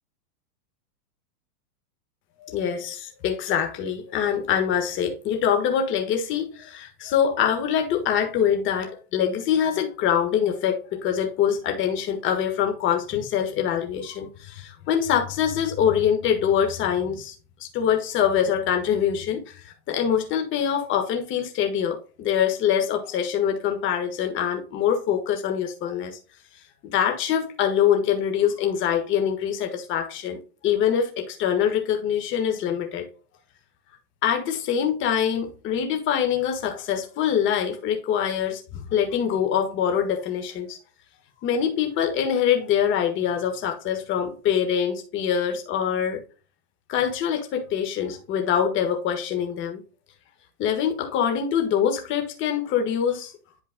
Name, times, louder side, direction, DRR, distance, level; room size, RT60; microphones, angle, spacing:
voice 1, 2.4-17.3 17.6-19.5 19.9-26.2 26.8-33.0 34.2-40.8 41.4-46.2 46.9-49.8 50.6-53.3, left 8 dB, 25° left, 1.5 m, -24 dB
11.0 x 4.4 x 2.2 m
supercardioid pair, 150°, 47 cm